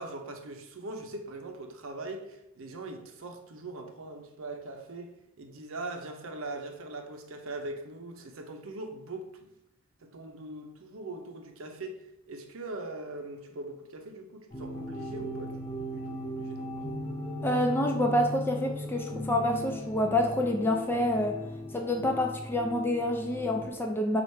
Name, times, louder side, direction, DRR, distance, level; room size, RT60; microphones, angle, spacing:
voice 1, 0.0-5.1 5.4-9.3 10.0-12.0 12.3-15.6 15.9-16.9, right 2 dB, 70° right, 4 dB, 0.6 m, -41 dB
sound 1, 14.5-23.7, left 1 dB, 25° left, 0.7 m, -37 dB
voice 2, 17.4-21.4 21.7-24.2, left 1 dB, 10° left, 2 dB, 0.3 m, -27 dB
4.6 x 2.4 x 4.3 m, 0.84 s
head